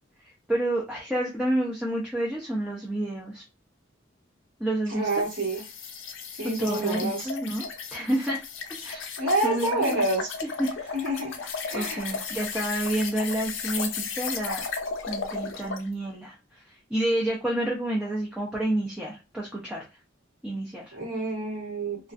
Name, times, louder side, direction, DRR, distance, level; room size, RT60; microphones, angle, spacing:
voice 1, 0.2-3.4 4.6-5.2 6.4-8.4 8.8-10.0 10.6-10.9 11.4-14.6 15.1-16.4 16.7-19.8 20.4-21.0, right 1 dB, 5° right, -4 dB, 0.5 m, -29 dB
voice 2, 4.9-5.6 6.4-7.3 9.2-10.3 10.9-11.4 11.6-12.2 20.9-22.1, right 2 dB, 65° right, -3 dB, 1.4 m, -28 dB
sound 1, 5.1-15.9, left 5 dB, 75° left, 0.5 m, -35 dB
2.4 x 2.4 x 2.4 m, 0.27 s
head